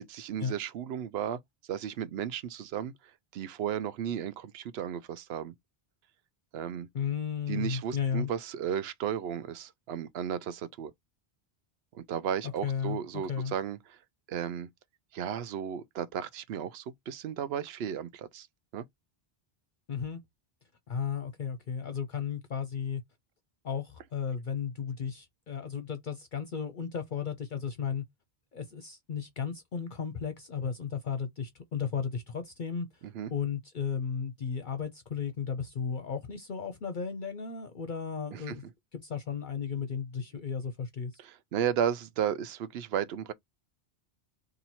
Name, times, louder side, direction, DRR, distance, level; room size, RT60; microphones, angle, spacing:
voice 1, 0.0-1.4 1.7-2.9 3.3-5.5 6.5-6.9 7.5-10.9 11.9-14.0 14.3-14.7 15.1-18.5 18.7-18.8 33.1-33.3 38.3-38.5 41.2-43.3, right 9 dB, 75° right, 0.8 m, -34 dB
voice 2, 6.9-8.3 12.6-13.5 19.9-20.2 20.9-23.0 23.6-28.0 28.5-38.7 38.9-41.2, left 7 dB, 55° left, 0.7 m, -34 dB
2.9 x 2.6 x 4.1 m
omnidirectional pair, 1.0 m